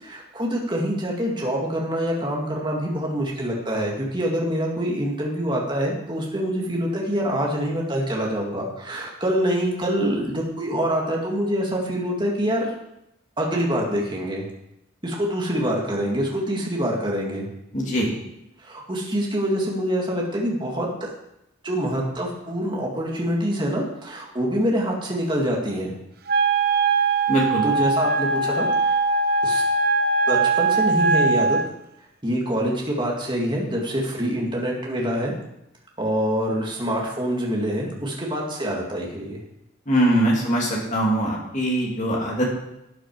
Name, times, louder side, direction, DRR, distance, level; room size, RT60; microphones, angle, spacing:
voice 1, 0.0-12.7 13.4-14.5 15.0-17.5 18.6-21.1 21.6-25.9 27.6-29.0 29.4-29.6 30.3-31.6 32.2-35.3 36.0-39.4, equal, 25° right, -2 dB, 2.1 m, -25 dB
voice 2, 17.7-18.1 27.3-27.6 39.9-42.5, right 1 dB, 35° left, -2 dB, 2.7 m, -22 dB
Wind instrument woodwind instrument, 26.3-31.7, right 3 dB, 50° right, 0.6 m, -21 dB
12.0 x 8.9 x 4.7 m, 0.85 s
head